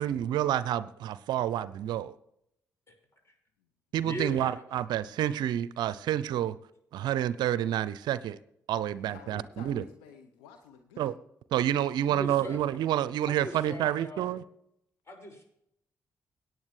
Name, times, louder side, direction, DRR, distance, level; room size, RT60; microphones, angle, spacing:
voice 1, 0.0-2.1 3.9-6.6 6.9-8.4 8.7-9.8 11.0-11.1 11.5-14.4, right 11 dB, 70° right, 16 dB, 0.5 m, -29 dB
voice 2, 4.0-4.6 12.0-12.6 13.3-14.3 15.1-15.4, equal, 35° left, 3 dB, 5.8 m, -40 dB
voice 3, 8.8-11.1, left 7 dB, 80° left, 6 dB, 0.9 m, -51 dB
17.5 x 9.3 x 3.2 m, 0.77 s
hypercardioid pair, 40°, 8 cm